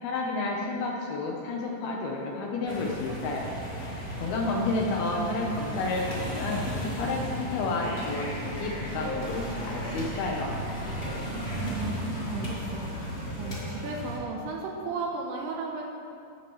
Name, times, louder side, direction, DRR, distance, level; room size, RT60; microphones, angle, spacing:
voice 1, 0.0-3.5 4.2-6.6 7.0-10.6, left 3 dB, 70° left, -1 dB, 2.5 m, -31 dB
sound 1, 2.7-14.2, equal, 30° left, 2.0 m, -34 dB
voice 2, 5.2-5.7 11.6-15.9, right 4 dB, 75° right, 0 dB, 2.5 m, -35 dB
15.0 x 11.5 x 3.2 m, 2.7 s
omnidirectional pair, 5.3 m